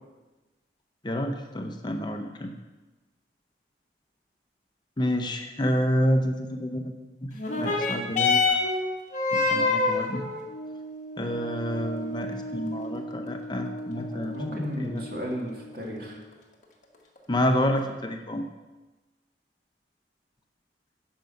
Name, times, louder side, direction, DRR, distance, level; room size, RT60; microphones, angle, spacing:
voice 1, 1.0-2.5 5.0-6.9 7.2-8.6 9.3-10.3 11.2-15.0 17.3-18.5, equal, 25° left, 5 dB, 0.6 m, -29 dB
sound 1, 7.4-16.3 17.2-17.3, left 3 dB, 45° left, 1.4 m, -29 dB
voice 2, 14.1-16.2, equal, 55° right, 0 dB, 2.0 m, -34 dB
10.5 x 5.4 x 6.5 m, 1.2 s
head